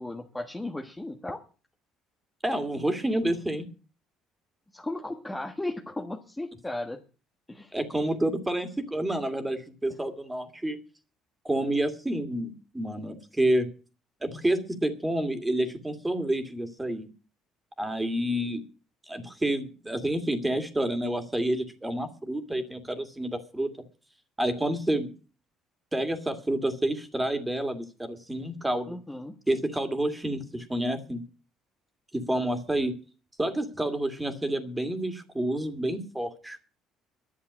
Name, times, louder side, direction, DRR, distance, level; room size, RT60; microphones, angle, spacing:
voice 1, 0.0-1.4 4.7-7.0 7.5-7.7 28.9-29.4, left 2 dB, 10° left, 3 dB, 1.3 m, -35 dB
voice 2, 2.4-3.7 7.7-10.8 11.4-13.7 14.2-17.1 17.8-18.6 19.1-23.7 24.4-25.1 25.9-29.0 29.5-31.2 32.1-33.0 33.4-36.6, right 1 dB, 10° right, 8 dB, 2.4 m, -29 dB
11.5 x 7.2 x 9.6 m, 0.37 s
cardioid pair, 95°, 0 cm